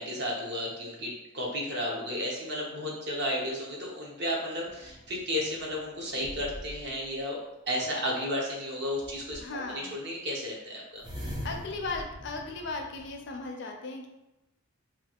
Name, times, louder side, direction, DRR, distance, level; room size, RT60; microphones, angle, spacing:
voice 1, 0.0-7.4 7.7-11.0, equal, 50° right, -2 dB, 0.7 m, -33 dB
sound 1, 4.7-7.1 9.0-9.7 11.0-13.4, equal, 20° right, 0.4 m, -43 dB
voice 2, 9.4-10.0 11.4-14.1, left 3 dB, 55° left, 2 dB, 0.4 m, -36 dB
3.1 x 2.3 x 2.8 m, 0.94 s
head